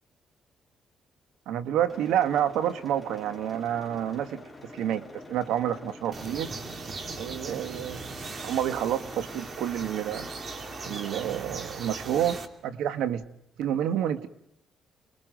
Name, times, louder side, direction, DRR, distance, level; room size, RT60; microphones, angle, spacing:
voice 1, 1.5-4.4 4.7-6.5 7.2-8.0 8.4-10.3 10.9-13.2 13.6-14.3, right 10 dB, 90° right, 12 dB, 1.3 m, -29 dB
sound 1, 1.9-11.4, left 2 dB, 5° left, 3.3 m, -46 dB
sound 2, 6.1-12.5, right 4 dB, 45° right, 2.4 m, -39 dB
29.0 x 21.5 x 5.1 m, 0.75 s
cardioid pair, 90°, 0 cm